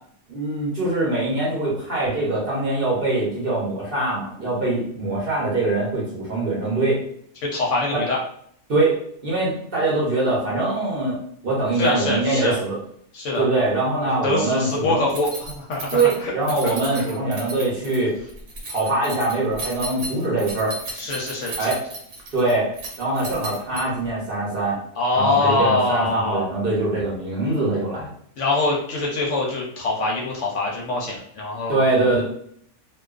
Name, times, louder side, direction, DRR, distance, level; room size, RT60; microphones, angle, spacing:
voice 1, 0.3-7.0 7.9-8.0 8.7-12.8 13.4-15.0 15.9-18.1 18.7-20.8 21.6-21.8 22.3-22.7 23.0-24.8 25.1-28.1 31.7-32.2, right 2 dB, 50° right, -6 dB, 0.9 m, -23 dB
voice 2, 7.5-8.2 11.8-12.5 13.1-13.4 14.2-15.9 16.2-16.3 16.6-16.7 21.0-21.5 25.0-26.5 28.4-31.8, left 2 dB, 65° left, -2 dB, 0.8 m, -23 dB
Keys jangling, 15.1-24.1, right 2 dB, 80° right, 1.1 m, -35 dB
2.3 x 2.3 x 2.3 m, 0.63 s
omnidirectional pair, 1.5 m